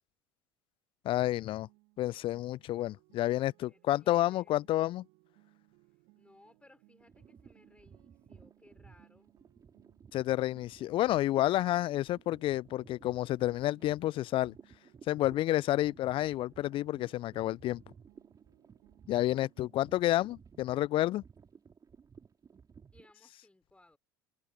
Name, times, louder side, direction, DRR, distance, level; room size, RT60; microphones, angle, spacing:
voice 1, 1.0-1.7 2.0-5.0 10.1-14.5 15.1-17.8 19.1-21.2, left 15 dB, 45° left, 0.5 m, -30 dB
sound 1, 1.1-13.0 13.3-19.8, right 26 dB, 60° right, 3.8 m, -66 dB
voice 2, 3.7-4.6 6.1-9.3 22.9-24.0, left 2 dB, 10° left, 5.2 m, -63 dB
sound 2, 7.0-23.1, right 6 dB, 30° right, 5.4 m, -57 dB
figure-of-eight pair, 70°, 13 cm